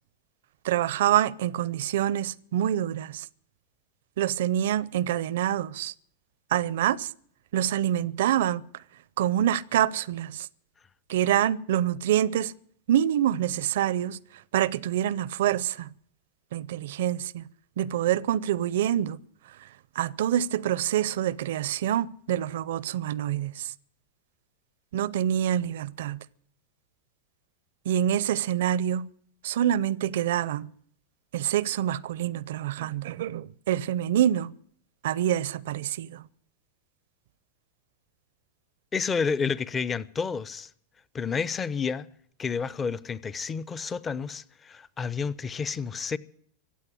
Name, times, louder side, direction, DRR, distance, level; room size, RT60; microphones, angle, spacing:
voice 1, 0.6-3.3 4.2-5.9 6.5-7.1 7.5-8.6 9.2-10.5 11.1-12.5 12.9-14.2 14.5-15.9 16.5-17.5 17.8-19.2 20.0-23.7 24.9-26.2 27.9-29.1 29.4-30.7 31.3-34.5 35.0-36.2, right 11 dB, 75° right, 0.5 m, -26 dB
voice 2, 38.9-40.7 41.1-42.1 42.4-46.2, left 5 dB, 20° left, 0.6 m, -30 dB
15.5 x 8.3 x 10.0 m
hypercardioid pair, 115°, 0 cm